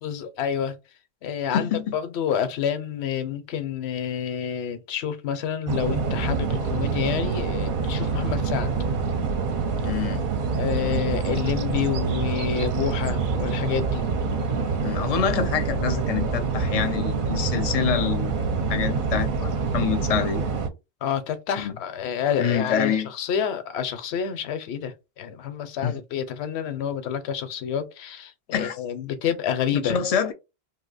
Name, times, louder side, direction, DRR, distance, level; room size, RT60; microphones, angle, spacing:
voice 1, 0.0-0.8 1.2-8.8 10.6-14.0 21.0-30.0, left 8 dB, 85° left, 0.9 m, -28 dB
sound 1, 5.7-20.7, right 5 dB, 60° right, 0.7 m, -26 dB
voice 2, 9.8-10.2 10.8-11.0 14.8-18.3 18.7-20.4 21.6-21.7 22.4-23.1 25.8-25.9 28.5-28.7 29.7-30.3, left 8 dB, 50° left, 0.5 m, -26 dB
2.7 x 2.1 x 3.9 m
omnidirectional pair, 1.1 m